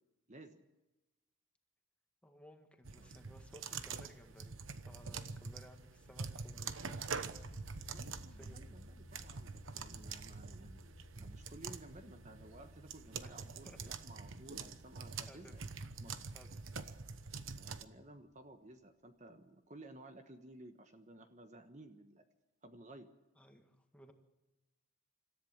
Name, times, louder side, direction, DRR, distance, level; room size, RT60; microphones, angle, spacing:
voice 1, 0.3-0.6 3.0-3.1 7.9-15.6 16.0-16.1 16.9-17.0 17.6-22.2 22.6-23.1, right 1 dB, 35° right, 7 dB, 1.3 m, -56 dB
voice 2, 2.2-7.0 8.4-8.7 13.2-13.8 15.2-15.5 16.3-16.5 23.4-24.1, equal, 5° left, 4 dB, 1.8 m, -59 dB
sound 1, 2.8-17.8, right 5 dB, 75° right, 1.1 m, -46 dB
sound 2, 7.3-18.2, equal, 85° left, 3.5 m, -58 dB
26.5 x 14.0 x 7.3 m, 1.0 s
head